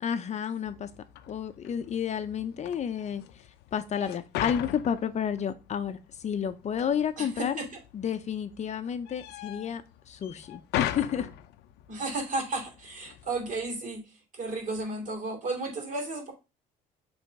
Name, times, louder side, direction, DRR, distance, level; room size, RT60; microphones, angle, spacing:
voice 1, 0.0-0.9 1.3-3.2 3.7-7.6 7.9-11.3, left 8 dB, 40° left, 0.7 m, -31 dB
sound 1, 0.6-13.8, left 13 dB, 85° left, 0.6 m, -40 dB
voice 2, 7.2-7.7 11.9-16.3, right 2 dB, 50° right, 3.0 m, -33 dB
6.4 x 3.4 x 5.2 m
cardioid pair, 110°, 17 cm